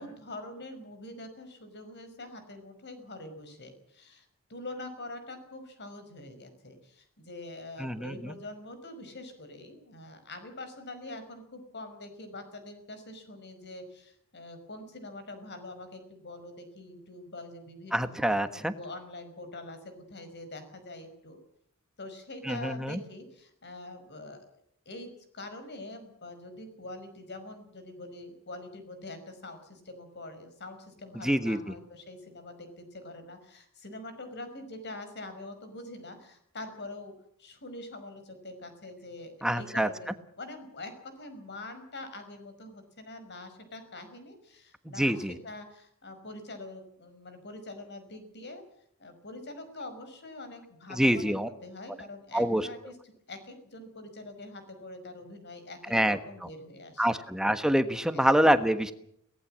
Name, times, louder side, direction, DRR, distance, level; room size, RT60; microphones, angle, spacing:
voice 1, 0.0-18.1 18.5-21.4 22.0-24.4 24.9-48.6 49.0-53.0 53.3-55.8 56.0-57.1 58.1-58.2, left 2 dB, 50° left, 9 dB, 5.2 m, -44 dB
voice 2, 7.8-8.3 17.9-18.7 22.4-23.0 31.2-31.6 39.4-39.9 45.0-45.3 50.9-51.5 52.3-52.7 55.9-56.2 57.0-58.9, equal, 5° right, 10 dB, 1.3 m, -26 dB
23.0 x 18.5 x 7.6 m, 0.69 s
head